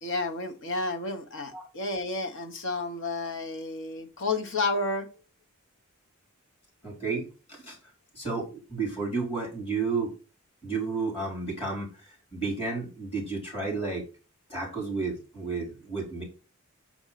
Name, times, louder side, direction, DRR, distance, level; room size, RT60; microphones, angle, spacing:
voice 1, 0.0-5.1, left 2 dB, 60° left, 5 dB, 1.2 m, -31 dB
voice 2, 6.8-7.8 8.1-10.1 10.6-11.9 12.3-14.1 14.5-16.2, right 4 dB, 25° left, -2 dB, 4.0 m, -32 dB
6.1 x 5.3 x 4.1 m, 0.33 s
head